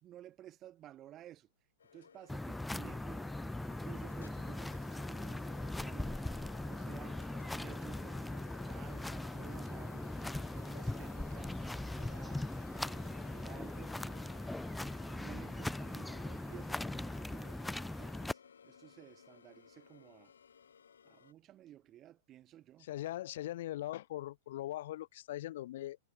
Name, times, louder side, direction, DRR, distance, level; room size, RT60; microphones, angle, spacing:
voice 1, 0.0-1.5 1.9-3.2 3.8-12.5 12.8-14.3 14.8-20.3 21.0-22.9, right 12 dB, 30° right, 4.5 m, -55 dB
sound 1, 1.8-21.3, left 7 dB, 85° left, 1.3 m, -58 dB
sound 2, 2.3-18.3, left 2 dB, 5° left, 0.6 m, -40 dB
voice 2, 22.8-26.0, left 14 dB, 60° left, 2.4 m, -40 dB
hypercardioid pair, 120°, 0 cm